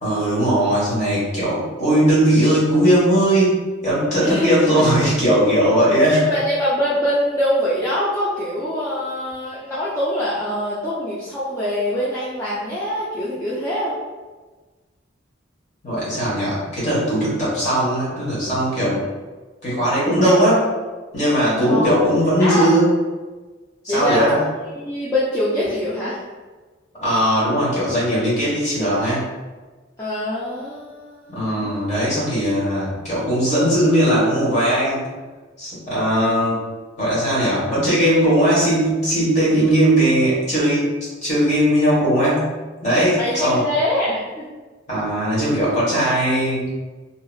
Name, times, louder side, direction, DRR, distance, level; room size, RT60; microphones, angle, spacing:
voice 1, 0.0-3.6 3.8-6.2 15.8-19.0 19.6-20.7 21.1-22.9 23.9-24.4 27.0-29.2 31.3-35.0 35.6-36.6 37.0-40.9 41.2-42.5 42.8-43.6 44.9-46.8, equal, 35° left, -8 dB, 1.4 m, -18 dB
voice 2, 4.2-4.8 6.1-14.0 21.7-22.1 22.4-22.7 23.9-24.5 24.8-26.2 30.0-31.8 43.2-44.4, equal, 15° left, -10 dB, 0.5 m, -23 dB
2.8 x 2.8 x 2.4 m, 1.3 s
head